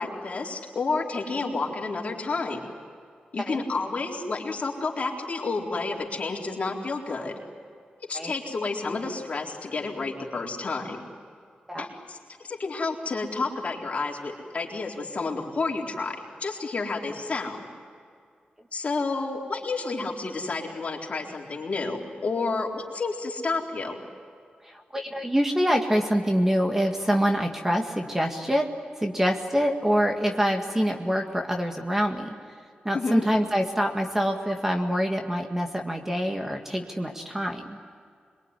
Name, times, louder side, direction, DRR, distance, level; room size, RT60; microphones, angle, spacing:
voice 1, 0.0-2.6 3.3-7.3 8.1-11.0 11.8-17.7 18.7-24.0 32.9-33.3, left 3 dB, 45° left, -1 dB, 4.2 m, -30 dB
voice 2, 24.6-28.7 29.0-32.3 32.8-37.8, equal, 10° right, 3 dB, 1.9 m, -25 dB
27.0 x 22.5 x 9.9 m, 2.2 s
wide cardioid pair, 120°, 3 cm